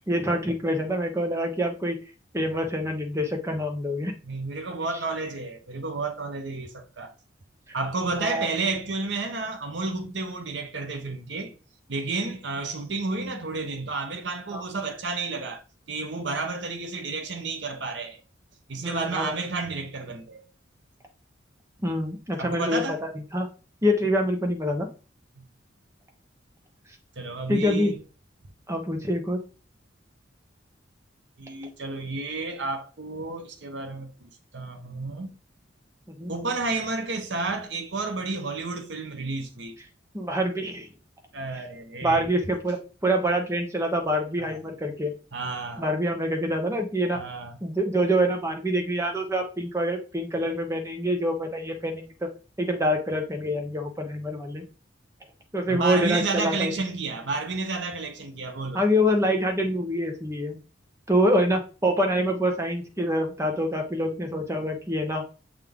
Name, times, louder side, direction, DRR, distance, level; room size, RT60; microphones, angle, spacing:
voice 1, 0.1-2.0 2.3-4.1 8.2-8.5 14.5-14.6 18.8-19.4 21.8-23.5 23.8-24.9 27.5-27.9 28.7-29.4 36.1-36.3 40.1-40.9 41.5-41.6 42.0-45.1 45.8-47.2 47.6-52.3 52.6-54.7 55.5-56.7 58.7-60.6 61.1-65.2, equal, 15° right, 0.9 m, -26 dB
voice 2, 4.2-7.1 7.7-11.5 11.9-15.6 15.9-18.2 18.7-20.5 22.4-23.0 25.4-25.5 27.2-28.0 31.4-35.3 36.3-39.7 41.3-42.3 44.4-44.6 45.3-45.9 47.1-47.6 55.7-58.8, right 3 dB, 65° right, 0.9 m, -31 dB
7.3 x 3.7 x 3.6 m
head